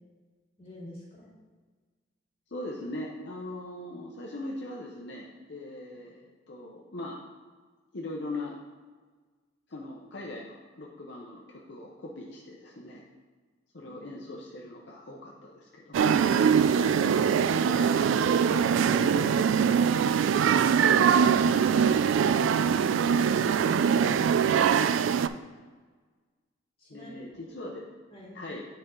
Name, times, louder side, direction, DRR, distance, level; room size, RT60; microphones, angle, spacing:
voice 1, 0.6-1.3 13.9-14.0 22.9-24.0 26.8-27.6 28.1-28.4, left 1 dB, 30° left, -5 dB, 2.3 m, -47 dB
voice 2, 2.5-7.2 7.9-8.5 9.7-13.0 13.7-16.3 16.8-18.2 18.5-20.5 20.8-21.8 24.4-24.7 26.9-27.8 28.3-28.7, left 1 dB, 65° left, -2 dB, 0.8 m, -40 dB
sound 1, 15.9-25.3, right 7 dB, 90° right, 0.3 m, -23 dB
Ringtone, 17.8-24.7, right 1 dB, 45° right, 2.3 m, -46 dB
9.2 x 4.4 x 3.7 m, 1.4 s
head